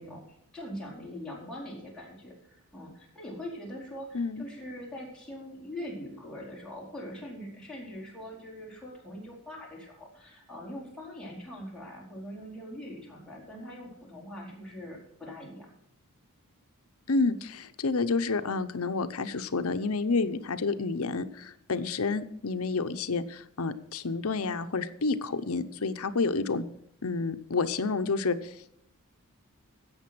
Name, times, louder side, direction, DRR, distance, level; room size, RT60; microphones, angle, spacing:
voice 1, 0.0-15.7, equal, 5° left, -5 dB, 4.5 m, -42 dB
voice 2, 17.1-26.6 27.0-28.4, left 4 dB, 70° left, 11 dB, 0.8 m, -29 dB
16.0 x 6.7 x 6.1 m, 0.74 s
head